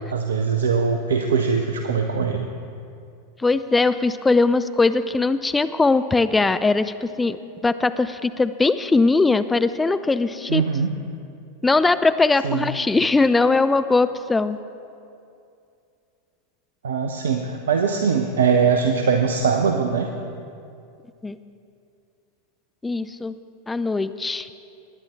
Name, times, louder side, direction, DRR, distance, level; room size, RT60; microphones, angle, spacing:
voice 1, 0.1-2.5 10.5-11.0 12.4-12.7 16.8-20.1, right 5 dB, 70° right, 5 dB, 0.6 m, -21 dB
voice 2, 3.4-10.6 11.6-14.6 21.2-21.4 22.8-23.3 23.7-24.5, left 3 dB, 10° left, 12 dB, 0.4 m, -20 dB
20.0 x 9.7 x 3.6 m, 2.5 s
figure-of-eight pair, 85°, 0 cm